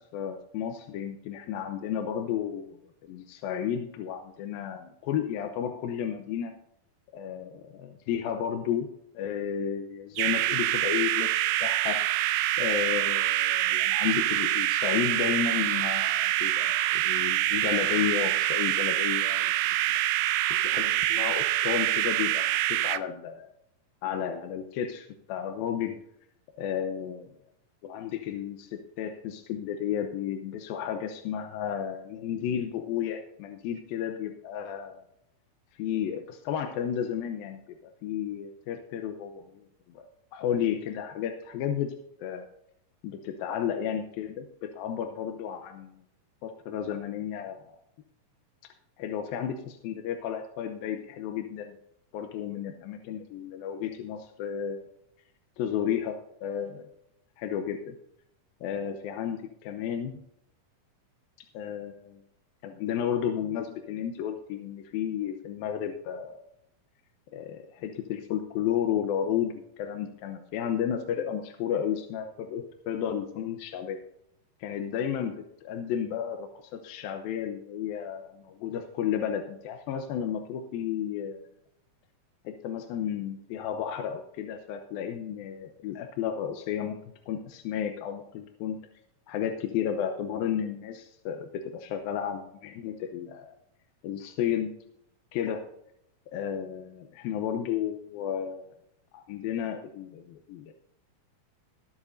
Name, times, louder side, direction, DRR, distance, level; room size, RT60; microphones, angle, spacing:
voice 1, 0.0-6.5 7.1-8.9 9.1-12.0 12.6-19.5 20.5-23.5 24.0-26.0 26.6-27.3 27.8-28.7 29.0-35.0 35.8-37.6 38.0-41.9 42.2-42.5 43.0-45.9 46.4-47.7 49.0-51.8 52.1-54.9 55.6-56.9 57.4-58.0 58.6-60.2 61.5-62.2 62.6-66.4 67.3-74.0 74.6-75.3 75.6-81.5 82.4-87.0 87.3-88.8 89.3-93.6 94.0-94.7 95.3-95.7 96.3-98.7 99.1-100.7, left 9 dB, 90° left, 5 dB, 2.7 m, -32 dB
sound 1, 10.2-23.0, right 15 dB, 85° right, 1.8 m, -26 dB
21.0 x 7.4 x 2.6 m, 0.76 s
omnidirectional pair, 4.1 m